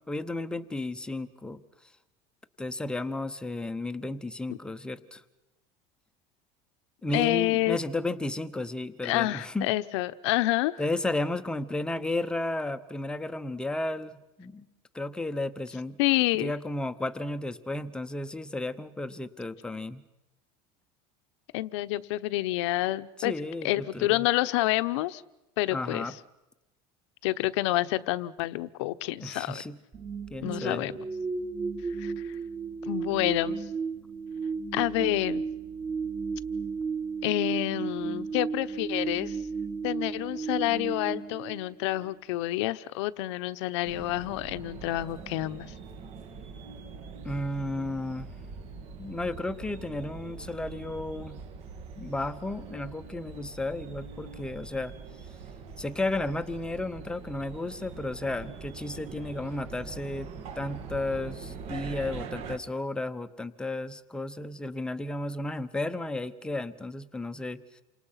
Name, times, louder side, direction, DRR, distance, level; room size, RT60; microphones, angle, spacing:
voice 1, 0.1-1.6 2.6-5.2 7.0-9.7 10.8-14.7 14.9-16.0 16.3-20.0 23.2-24.3 25.7-26.1 29.2-29.8 30.3-30.9 47.2-48.3 49.0-51.4 52.0-54.9 55.8-60.3 60.6-67.8, left 2 dB, 5° left, 10 dB, 1.0 m, -33 dB
voice 2, 7.1-7.8 9.0-10.8 16.0-16.5 21.5-23.3 23.6-25.2 25.6-26.1 27.2-29.6 30.4-30.9 32.0-32.4 32.8-33.6 34.7-35.4 37.2-39.4 39.8-45.7, left 17 dB, 85° left, 13 dB, 1.0 m, -28 dB
sound 1, 29.9-42.1, right 5 dB, 30° right, 3.1 m, -34 dB
sound 2, 43.8-62.6, right 5 dB, 45° right, 2.2 m, -43 dB
29.0 x 26.0 x 5.8 m, 0.98 s
cardioid pair, 160°, 14 cm